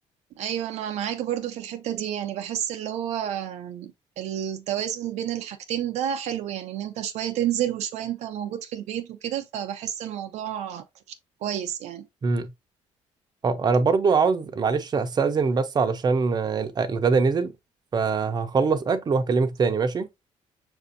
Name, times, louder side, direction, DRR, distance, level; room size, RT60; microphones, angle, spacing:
voice 1, 0.4-11.2 11.4-12.1, right 10 dB, 75° right, 0.5 m, -30 dB
voice 2, 13.4-17.5 17.9-20.1, right 4 dB, 35° right, 0.6 m, -23 dB
5.9 x 2.6 x 2.5 m
cardioid pair, 85°, 12 cm